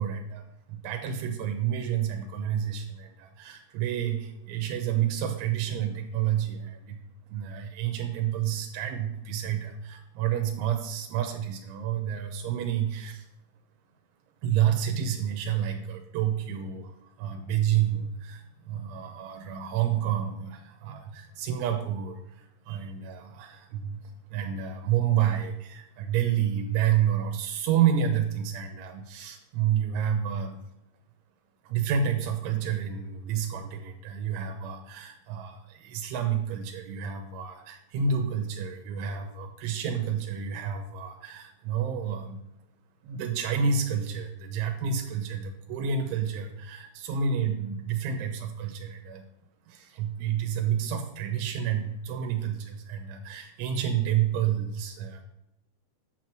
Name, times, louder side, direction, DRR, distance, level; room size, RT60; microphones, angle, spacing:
voice 1, 0.0-7.0 7.3-13.3 14.4-30.6 31.6-42.4 43.0-49.3 49.7-55.2, right 8 dB, 85° right, 3 dB, 3.3 m, -29 dB
8.9 x 6.3 x 6.0 m, 0.81 s
omnidirectional pair, 5.4 m